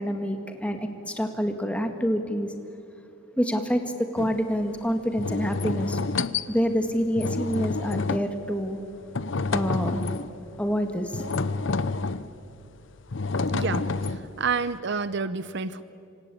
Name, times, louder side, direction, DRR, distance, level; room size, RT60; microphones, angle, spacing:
voice 1, 0.0-2.5 3.4-6.0 6.5-8.8 9.5-10.0 10.6-11.2, equal, 5° left, 6 dB, 1.9 m, -27 dB
sound 1, 4.2-4.4 5.2-6.5 7.2-8.4 9.1-10.4 11.1-12.3 13.1-14.4, left 3 dB, 60° left, 0.8 m, -28 dB
voice 2, 13.5-15.8, right 5 dB, 55° right, 15 dB, 0.7 m, -29 dB
26.5 x 26.5 x 8.6 m, 2.7 s
head